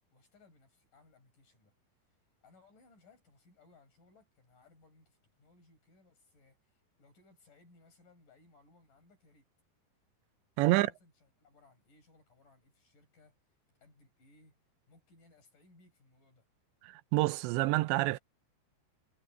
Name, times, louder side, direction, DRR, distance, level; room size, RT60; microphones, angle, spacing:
voice 1, 0.1-1.7 2.0-2.2 2.4-9.5 10.7-13.4 13.8-14.6 14.9-16.5, left 3 dB, 50° left, 9.4 m, -64 dB
voice 2, 16.8-18.2, right 19 dB, 90° right, 3.0 m, -28 dB
omnidirectional pair, 5.0 m